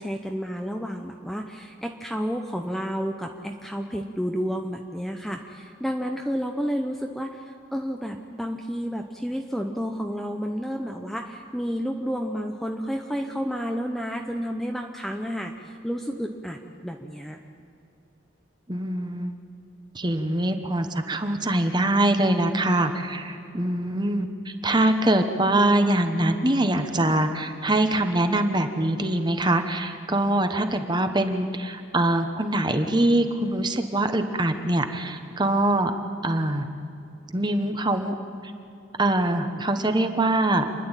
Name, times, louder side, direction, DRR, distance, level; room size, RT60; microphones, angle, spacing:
voice 1, 0.0-17.4, equal, ahead, 3 dB, 0.7 m, -31 dB
voice 2, 18.7-19.4 19.9-35.9 36.2-36.7 37.3-38.1 38.4-38.5 39.0-40.7, right 1 dB, 20° right, 7 dB, 1.1 m, -23 dB
28.5 x 11.5 x 9.0 m, 2.6 s
head